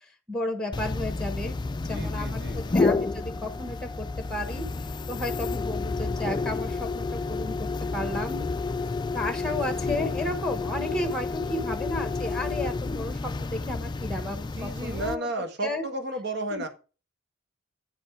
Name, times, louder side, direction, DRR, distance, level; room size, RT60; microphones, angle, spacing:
voice 1, 0.3-1.6 1.9-4.6 5.1-8.4 9.1-15.8 16.5-16.6, left 1 dB, 5° left, 7 dB, 1.2 m, -33 dB
sound 1, 0.7-15.2, left 3 dB, 20° left, 0.3 m, -30 dB
voice 2, 1.8-2.8 14.6-16.7, right 2 dB, 55° right, 7 dB, 1.5 m, -33 dB
9.1 x 5.3 x 4.9 m, 0.33 s
head